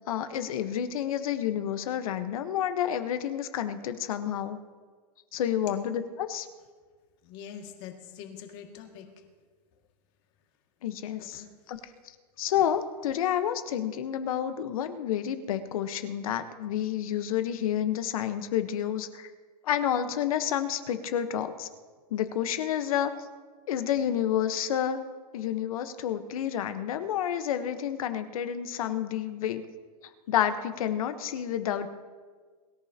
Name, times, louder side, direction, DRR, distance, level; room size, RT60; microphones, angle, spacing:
voice 1, 0.1-4.6 5.3-6.5 10.8-11.4 11.7-11.8 12.4-19.3 19.6-21.7 22.1-23.1 23.7-25.0 25.3-29.6 30.3-31.9, left 10 dB, 60° left, 9 dB, 1.1 m, -29 dB
voice 2, 7.2-9.0 11.2-11.5, left 8 dB, 35° left, 2 dB, 2.1 m, -44 dB
23.0 x 13.5 x 2.9 m, 1.5 s
supercardioid pair, 160°, 20 cm